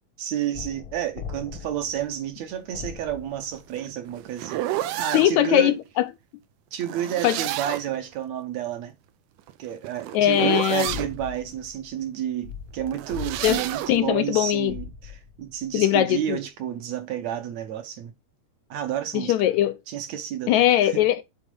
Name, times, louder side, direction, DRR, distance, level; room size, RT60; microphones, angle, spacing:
voice 1, 0.2-4.6 5.0-5.8 6.7-8.9 9.6-18.1 18.7-19.4 19.9-20.6 20.8-21.0, right 10 dB, 70° right, 2.0 m, -30 dB
sound 1, 0.5-4.2 10.8-15.8, left 7 dB, 55° left, 1.6 m, -41 dB
sound 2, 3.5-5.3 6.8-8.0 9.4-11.1 12.9-14.0, right 13 dB, 85° right, 2.2 m, -30 dB
voice 2, 5.1-6.1 7.2-7.4 10.1-11.0 13.4-13.6 13.9-14.7 15.7-16.4 19.1-19.8 20.5-21.2, left 12 dB, 75° left, 1.8 m, -20 dB
8.6 x 4.0 x 5.3 m
omnidirectional pair, 3.6 m